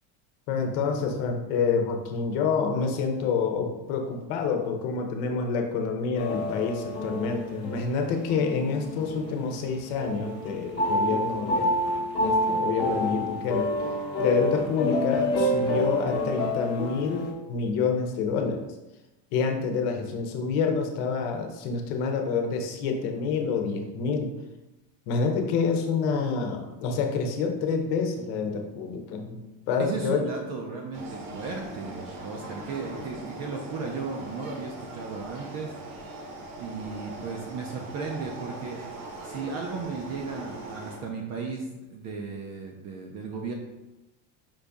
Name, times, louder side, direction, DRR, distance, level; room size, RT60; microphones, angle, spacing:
voice 1, 0.5-11.7 12.2-13.7 14.2-18.6 19.3-24.3 25.1-29.4 29.7-30.3, left 5 dB, 80° left, 4 dB, 0.9 m, -27 dB
sound 1, 6.1-9.7 10.0-17.3, equal, 30° left, 1.0 m, -28 dB
voice 2, 29.8-36.3 36.6-43.5, right 4 dB, 40° right, 1 dB, 0.5 m, -36 dB
sound 2, 30.9-41.0, right 2 dB, 55° right, 1.0 m, -40 dB
5.3 x 2.7 x 3.5 m, 1.0 s
cardioid pair, 150°, 45 cm